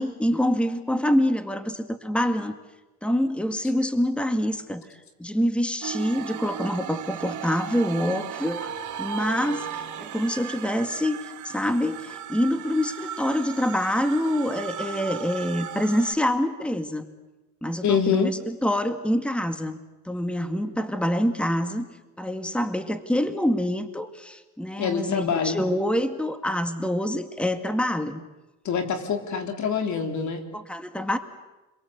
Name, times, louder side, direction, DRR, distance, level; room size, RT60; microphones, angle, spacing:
voice 1, 0.0-2.5 3.0-4.8 5.2-8.7 9.0-17.0 17.6-19.8 20.1-21.9 22.2-28.2 30.5-31.2, equal, 5° left, 8 dB, 2.0 m, -26 dB
sound 1, 5.8-16.1, right 9 dB, 75° right, 2.7 m, -36 dB
voice 2, 17.8-18.3 24.8-25.6 28.7-30.4, left 6 dB, 70° left, 5 dB, 3.5 m, -25 dB
29.5 x 22.5 x 8.2 m, 1.1 s
cardioid pair, 90°, 30 cm